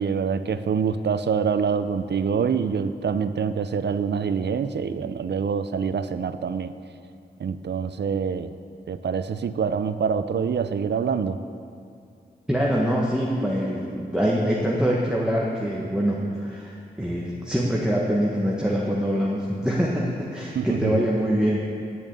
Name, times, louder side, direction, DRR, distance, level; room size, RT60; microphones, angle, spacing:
voice 1, 0.0-6.7 7.4-8.5 8.9-11.4 20.5-21.1, right 6 dB, 70° right, 12 dB, 0.6 m, -25 dB
voice 2, 12.5-21.6, equal, 5° right, -4 dB, 1.4 m, -24 dB
10.0 x 7.2 x 8.7 m, 2.6 s
wide cardioid pair, 75°, 18 cm